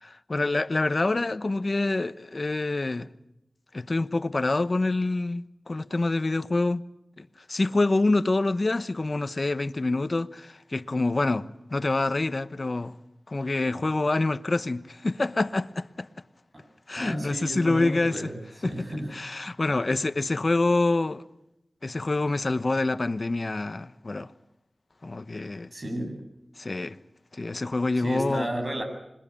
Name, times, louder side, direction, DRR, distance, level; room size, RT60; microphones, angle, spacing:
voice 1, 0.0-3.1 3.7-6.8 7.2-12.9 13.3-16.1 16.9-18.3 18.6-18.9 19.1-21.2 21.8-24.3 25.0-25.7 26.6-27.0 27.3-28.5, left 2 dB, 50° left, 1.1 m, -26 dB
voice 2, 16.9-19.1 25.7-26.2 28.0-28.8, right 1 dB, 50° right, 7.9 m, -33 dB
27.0 x 22.0 x 8.7 m
wide cardioid pair, 50°, 0 cm